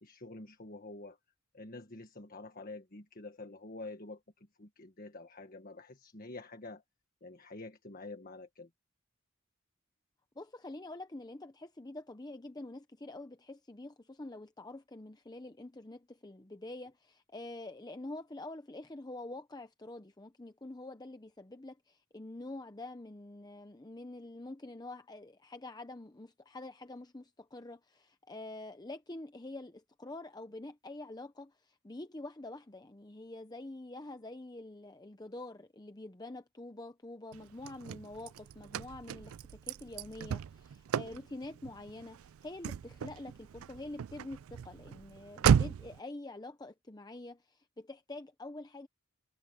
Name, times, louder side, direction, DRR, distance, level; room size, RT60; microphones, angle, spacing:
voice 1, 0.0-1.2 1.5-4.2 4.6-6.8 7.2-8.7, left 2 dB, 45° left, 1.6 m, -47 dB
voice 2, 10.4-48.9, left 2 dB, 20° left, 0.8 m, -46 dB
Car / Slam, 37.3-46.0, right 7 dB, 90° right, 0.4 m, -34 dB
head